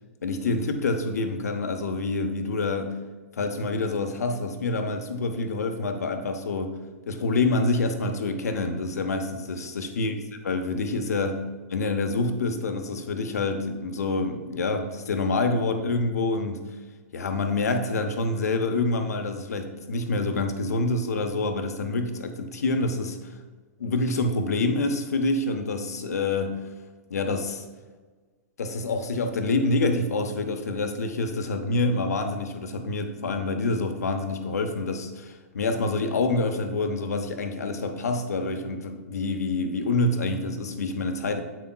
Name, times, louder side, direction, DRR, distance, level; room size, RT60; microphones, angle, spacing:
voice 1, 0.2-2.9 3.4-6.7 7.1-10.2 10.4-11.3 11.7-16.7 17.1-23.3 23.8-26.6 27.1-27.6 28.6-41.4, left 3 dB, 80° left, 7 dB, 0.8 m, -27 dB
8.2 x 6.1 x 2.3 m, 1.4 s
hypercardioid pair, 115°, 8 cm